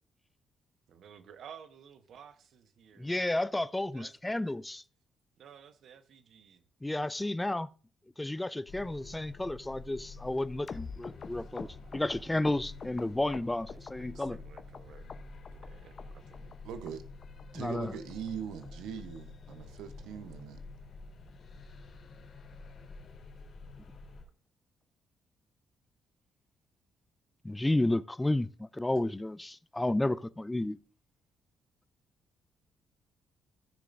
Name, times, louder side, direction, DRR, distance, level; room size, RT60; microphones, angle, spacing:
voice 1, 0.9-3.1 3.9-4.6 5.4-6.6 8.5-8.6 9.0-9.1 11.4-11.5 11.8-12.3 13.7-15.1 15.5-16.5, right 8 dB, 70° right, 1.1 m, -54 dB
voice 2, 3.0-4.8 6.8-7.7 8.2-11.7 11.9-14.4 17.5-17.9 27.4-30.8, left 1 dB, 10° left, 0.4 m, -32 dB
sound 1, 8.7-24.2, left 3 dB, 65° left, 3.5 m, -49 dB
sound 2, 10.7-13.9 14.2-14.8 15.1-15.7 16.0-16.1 16.3-16.6 16.9-17.0 17.2-17.4 17.7-17.8 18.1-18.3 18.6-18.7 19.0-19.2 19.5-19.6 19.9-20.1 20.4-20.5, left 5 dB, 45° left, 0.8 m, -44 dB
voice 3, 16.6-17.0 17.5-20.6, right 7 dB, 90° right, 0.9 m, -41 dB
14.5 x 6.7 x 2.6 m
cardioid pair, 90°, 0 cm